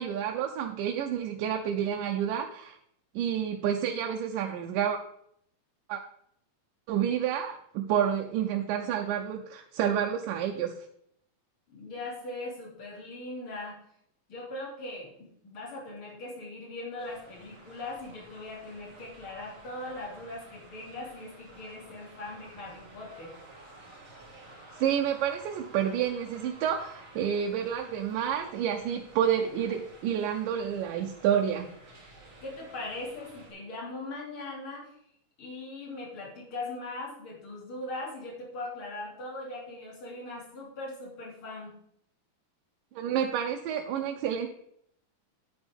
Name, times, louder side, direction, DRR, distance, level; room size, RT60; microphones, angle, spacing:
voice 1, 0.0-2.8 3.2-5.0 5.9-6.0 6.9-10.7 24.8-31.7 43.0-44.5, right 9 dB, 85° right, 3 dB, 2.4 m, -29 dB
voice 2, 11.7-13.8 14.3-23.4 32.4-34.9 35.4-41.7, left 2 dB, 40° left, -3 dB, 3.5 m, -40 dB
sound 1, 17.0-33.5, right 2 dB, 30° right, 3.2 m, -52 dB
9.9 x 8.9 x 3.5 m, 0.71 s
omnidirectional pair, 3.7 m